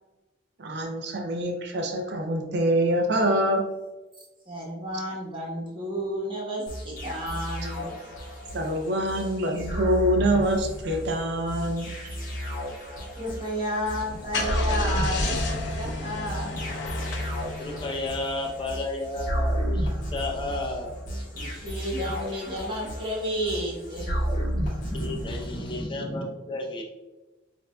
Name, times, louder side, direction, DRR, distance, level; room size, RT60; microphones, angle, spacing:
voice 1, 0.6-3.7 8.5-12.2, right 1 dB, 55° right, 2 dB, 0.5 m, -25 dB
voice 2, 4.5-7.9 13.2-16.5 21.3-24.1, equal, 25° right, -5 dB, 1.2 m, -32 dB
sound 1, 6.7-25.8, equal, 45° left, 1.4 m, -32 dB
Car / Engine starting, 14.0-18.6, left 2 dB, 65° left, 0.6 m, -32 dB
voice 3, 17.6-20.9 24.1-24.2 24.5-26.8, left 2 dB, 25° left, 0 dB, 0.6 m, -32 dB
6.4 x 2.6 x 2.2 m, 1.1 s
head